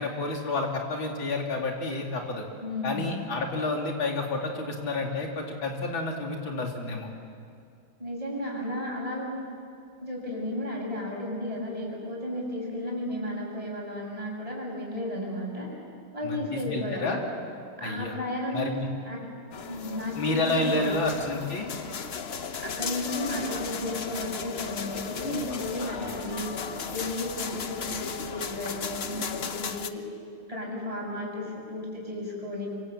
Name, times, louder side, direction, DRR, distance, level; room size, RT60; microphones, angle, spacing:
voice 1, 0.0-2.5 2.8-7.1 16.2-17.2 17.8-18.1 18.5-18.9 20.2-21.7 25.5-26.1, left 2 dB, 70° left, 0 dB, 3.9 m, -30 dB
voice 2, 2.6-3.1 8.0-9.4 10.0-15.7 16.1-17.2 17.8-18.7 19.0-19.3 19.7-21.0 22.6-26.5 26.9-30.0 30.5-32.7, left 1 dB, 15° right, -2 dB, 7.1 m, -33 dB
sound 1, 19.5-29.9, left 6 dB, 55° left, 0.7 m, -35 dB
26.0 x 25.0 x 8.2 m, 2.4 s
omnidirectional pair, 2.2 m